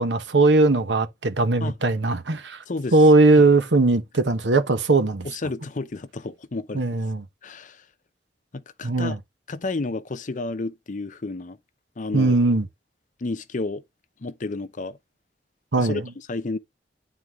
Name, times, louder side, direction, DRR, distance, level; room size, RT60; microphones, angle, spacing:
voice 1, 0.0-2.6 2.9-5.3 6.7-7.2 8.8-9.2 12.1-12.6 15.7-16.0, right 2 dB, 90° right, 1.0 m, -19 dB
voice 2, 2.7-3.0 3.3-3.4 5.2-6.9 7.4-7.8 8.5-9.1 9.5-11.6 12.0-12.4 13.2-13.8 14.2-15.0 15.8-16.6, left 3 dB, 45° left, 0.6 m, -31 dB
9.4 x 4.0 x 3.6 m
head